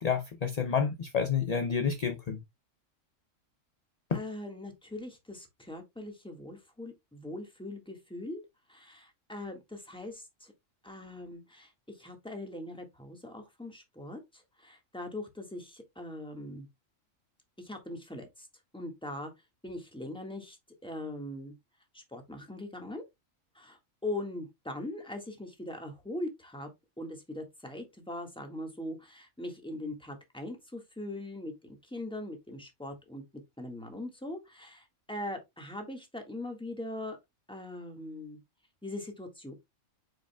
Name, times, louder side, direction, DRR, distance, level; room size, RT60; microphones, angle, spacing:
voice 1, 0.0-2.4 4.1-4.2, left 6 dB, 40° left, 0.6 m, -29 dB
voice 2, 4.1-8.4 8.7-10.5 10.8-16.7 17.6-18.5 18.7-19.3 19.6-20.6 20.8-21.5 21.9-23.0 23.5-26.7 27.0-37.2 37.5-38.4 38.8-39.5, left 1 dB, 5° left, 1.6 m, -41 dB
8.9 x 5.1 x 2.3 m
omnidirectional pair, 1.4 m